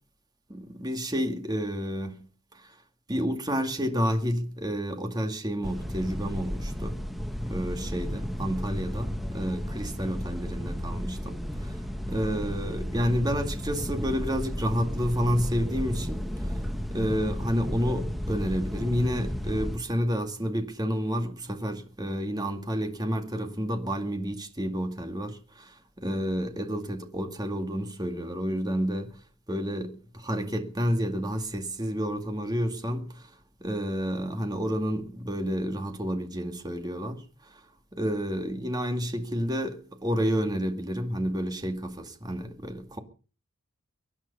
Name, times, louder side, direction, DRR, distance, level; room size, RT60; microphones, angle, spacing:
voice 1, 0.5-2.3 2.5-2.7 3.1-7.0 7.5-11.8 12.1-16.6 16.9-29.2 29.5-33.3 33.6-37.6 37.9-43.0, equal, 20° right, 2.2 m, -30 dB
sound 1, 5.6-19.8, equal, ahead, 1.5 m, -33 dB
23.5 x 11.0 x 5.6 m
head